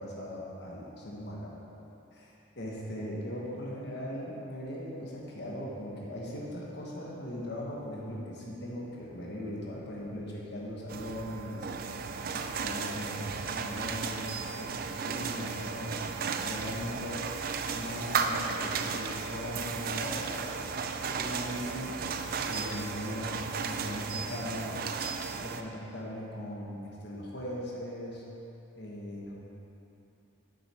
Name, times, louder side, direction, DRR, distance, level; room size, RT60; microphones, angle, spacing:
voice 1, 0.0-1.5 2.1-11.7 12.3-17.2 17.7-20.3 21.1-21.9 22.3-24.8 25.3-28.2 28.8-29.3, equal, 55° left, -4 dB, 1.3 m, -39 dB
sound 1, 9.4-17.3, right 2 dB, 75° left, 1.3 m, -60 dB
sound 2, 10.9-25.6, right 5 dB, 45° right, 0.4 m, -35 dB
9.6 x 6.8 x 4.4 m, 2.9 s
head